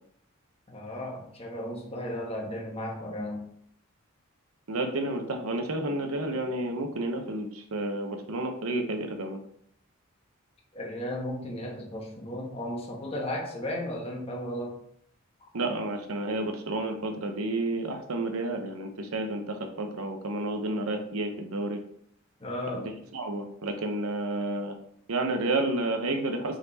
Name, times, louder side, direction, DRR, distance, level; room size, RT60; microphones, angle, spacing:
voice 1, 0.7-3.5 10.7-14.8 15.4-15.5 22.4-22.9, left 1 dB, 30° left, 0 dB, 1.3 m, -35 dB
voice 2, 4.7-9.4 15.5-21.8 22.7-22.8 23.1-24.8 25.1-26.6, right 2 dB, 85° right, 5 dB, 0.9 m, -30 dB
5.4 x 4.3 x 4.1 m, 0.64 s
head